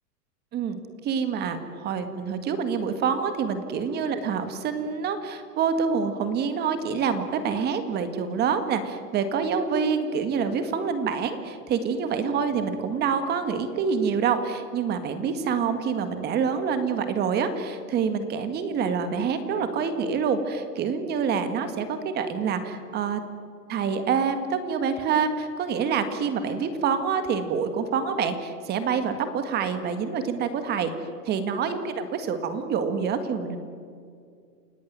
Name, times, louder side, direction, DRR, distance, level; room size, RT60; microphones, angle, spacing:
voice 1, 0.5-23.2 23.7-30.9 31.3-33.6, right 6 dB, 20° right, 9 dB, 1.8 m, -26 dB
28.5 x 17.5 x 9.5 m, 2.3 s
supercardioid pair, 160°, 48 cm